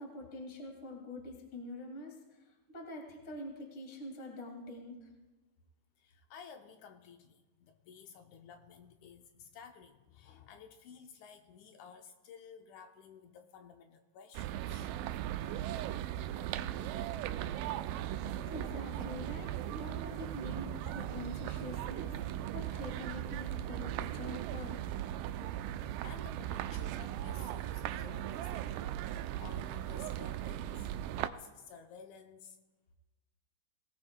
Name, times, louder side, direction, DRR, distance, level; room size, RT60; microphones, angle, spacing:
voice 1, 0.0-5.1 18.4-22.1 22.5-25.0, left 1 dB, 25° left, 0 dB, 2.1 m, -45 dB
voice 2, 6.0-14.9 17.6-17.8 20.9-21.1 26.0-32.6, left 6 dB, 75° left, 5 dB, 1.9 m, -54 dB
sound 1, 14.3-31.3, right 12 dB, 80° right, 2.1 m, -38 dB
24.5 x 17.0 x 2.2 m, 1.2 s
omnidirectional pair, 4.1 m